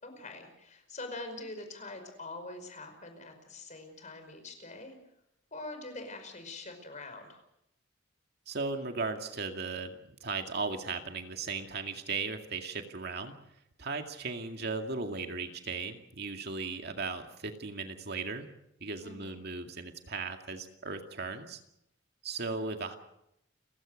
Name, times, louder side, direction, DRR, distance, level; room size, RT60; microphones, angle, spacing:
voice 1, 0.0-4.9 5.5-7.4 19.0-19.4, left 2 dB, 40° left, 6 dB, 5.1 m, -44 dB
voice 2, 8.5-13.4 13.8-18.5 18.8-21.6 22.2-23.0, right 4 dB, 60° right, 5 dB, 2.2 m, -37 dB
30.0 x 16.0 x 6.5 m, 0.81 s
head